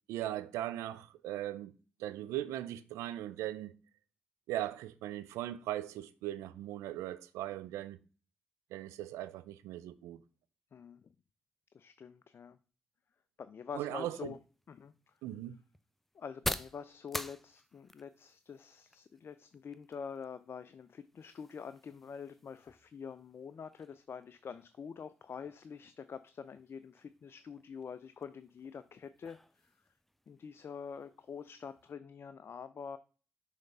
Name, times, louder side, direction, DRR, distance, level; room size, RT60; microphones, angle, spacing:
voice 1, 0.1-1.7 2.0-3.7 4.5-8.0 8.7-10.2 13.7-14.3 15.2-15.6, right 13 dB, 85° right, 0.4 m, -39 dB
voice 2, 10.7-11.1 11.7-12.6 13.4-14.4 14.7-15.1 16.1-29.7 30.3-33.0, left 6 dB, 55° left, 0.4 m, -46 dB
sound 1, 14.3-31.9, equal, 5° left, 0.5 m, -48 dB
6.4 x 3.4 x 5.4 m
hypercardioid pair, 40°, 5 cm